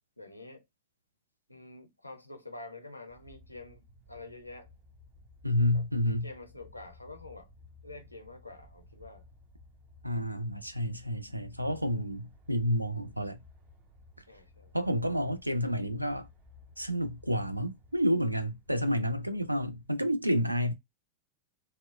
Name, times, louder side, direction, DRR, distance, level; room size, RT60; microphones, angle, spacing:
voice 1, 0.2-0.6 1.5-4.7 5.7-7.5 7.8-9.2 11.9-12.1 14.3-14.8, left 2 dB, 85° left, 0.5 m, -47 dB
sound 1, 3.1-19.9, left 2 dB, 40° right, 0.8 m, -57 dB
voice 2, 5.4-6.3 10.0-13.4 14.7-16.3 16.8-20.7, equal, 85° right, 0.3 m, -30 dB
2.7 x 2.0 x 2.2 m
figure-of-eight pair, 90°, 0 cm